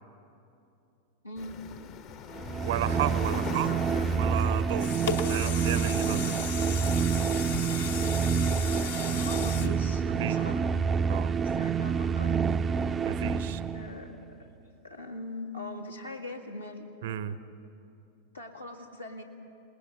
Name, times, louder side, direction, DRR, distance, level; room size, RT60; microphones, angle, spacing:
voice 1, 1.2-1.6 3.3-4.2 9.0-10.7 11.4-12.5 13.7-14.1 14.4-14.5 14.8-16.9 18.3-19.2, left 2 dB, 85° left, 0 dB, 2.1 m, -41 dB
sound 1, 1.4-7.9, left 7 dB, 40° left, 1.0 m, -43 dB
sound 2, 2.3-14.0, right 6 dB, 20° right, 0.5 m, -28 dB
voice 2, 2.6-3.7 4.1-5.0 5.2-6.5 10.2-10.6 11.1-11.3 13.0-13.6 17.0-17.4, right 11 dB, 55° right, 15 dB, 0.7 m, -33 dB
sound 3, 4.8-10.8 11.3-11.4, left 6 dB, 60° left, 1.3 m, -36 dB
27.5 x 20.0 x 5.4 m, 2.7 s
figure-of-eight pair, 90°, 0 cm